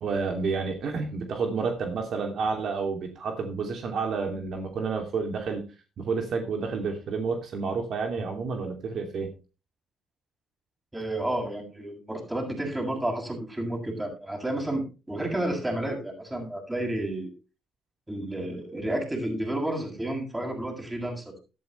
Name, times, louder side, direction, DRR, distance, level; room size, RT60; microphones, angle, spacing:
voice 1, 0.0-5.7 6.0-9.3, right 4 dB, 65° right, 4 dB, 2.7 m, -30 dB
voice 2, 10.9-17.3 18.1-21.4, right 1 dB, 15° right, 1 dB, 7.7 m, -31 dB
14.0 x 13.0 x 3.3 m, 0.32 s
cardioid pair, 90°, 0 cm